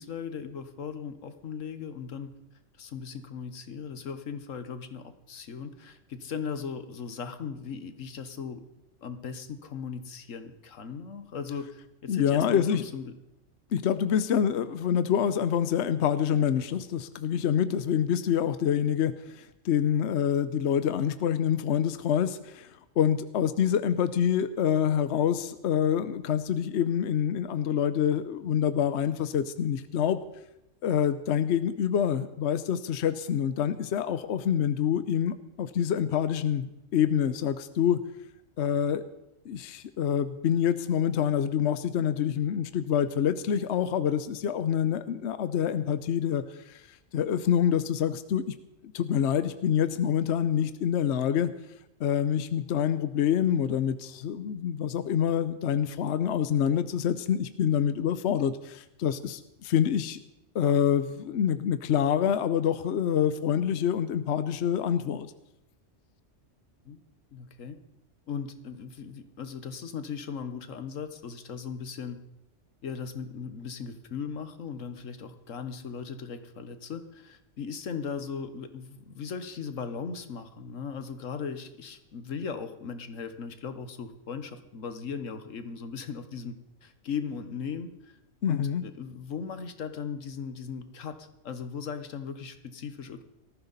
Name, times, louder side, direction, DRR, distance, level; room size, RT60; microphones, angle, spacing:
voice 1, 0.0-2.3 2.8-8.6 9.0-13.1 66.8-67.0 67.3-67.8 68.3-72.2 72.8-86.6 86.8-88.2 88.5-93.2, left 6 dB, 85° left, 10 dB, 1.5 m, -38 dB
voice 2, 12.1-12.8 13.7-22.7 23.0-30.2 30.8-38.0 38.6-39.0 39.5-48.5 48.9-51.5 52.0-60.2 60.5-65.3 88.4-88.8, left 9 dB, 65° left, 12 dB, 1.0 m, -26 dB
18.5 x 14.5 x 4.1 m, 0.90 s
omnidirectional pair, 1.3 m